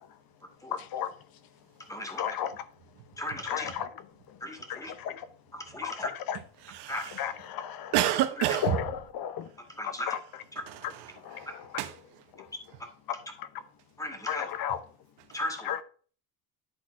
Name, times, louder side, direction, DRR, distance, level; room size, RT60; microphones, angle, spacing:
voice 1, 0.7-1.1 2.2-2.5 3.5-3.9 4.7-5.3 5.8-6.4 7.2-7.9 8.6-9.5 10.1-10.2 11.2-11.5 14.3-14.8 15.7-15.8, left 9 dB, 65° left, 0.9 m, -33 dB
voice 2, 1.9-2.4 3.2-3.7 4.4-5.0 5.5-6.1 6.9-7.0 9.8-10.2 10.5-10.6 14.0-14.5 15.3-15.7, left 1 dB, 10° left, 2.1 m, -36 dB
voice 3, 6.6-7.2 7.9-8.8 10.7-11.5 11.8-12.2, right 12 dB, 85° right, 1.1 m, -30 dB
11.0 x 4.4 x 4.5 m
cardioid pair, 125°, 39 cm